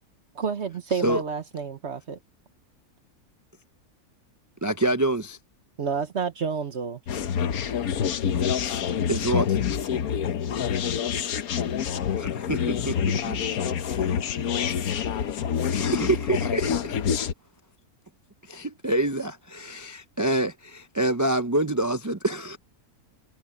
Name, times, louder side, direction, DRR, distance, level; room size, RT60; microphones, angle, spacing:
voice 1, 0.3-2.2 5.8-7.0, right 6 dB, 50° right, 1.2 m, -29 dB
voice 2, 4.6-5.4 9.1-9.6 12.2-14.1 15.1-15.3 15.7-17.0 18.4-22.6, right 2 dB, 25° right, 0.4 m, -27 dB
sound 1, 7.1-17.3, left 8 dB, 80° left, 1.4 m, -27 dB
voice 3, 12.9-15.3, left 1 dB, 60° left, 7.1 m, -50 dB
omnidirectional pair, 1.5 m